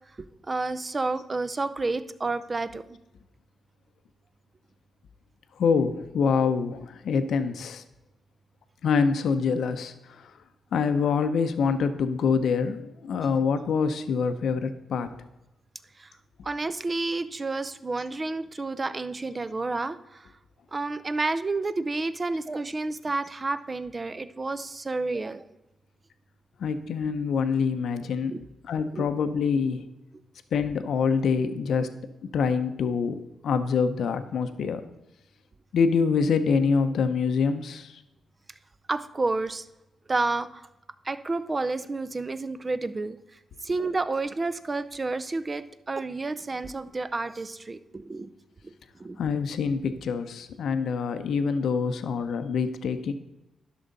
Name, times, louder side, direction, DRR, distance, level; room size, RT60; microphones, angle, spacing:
voice 1, 0.5-3.0 16.0-16.1 16.4-20.3 20.7-25.5 28.3-28.4 28.9-29.1 38.9-39.7 40.1-40.7 41.0-43.2 43.6-48.3 48.6-48.7 49.0-49.2, right 3 dB, 30° right, 13 dB, 0.5 m, -30 dB
voice 2, 5.6-7.8 8.8-10.3 10.7-15.1 26.6-29.9 30.5-31.9 32.2-33.2 33.4-34.8 35.7-38.0 49.2-53.1, left 5 dB, 75° left, 9 dB, 0.7 m, -25 dB
11.5 x 6.2 x 4.0 m, 0.96 s
cardioid pair, 85°, 0 cm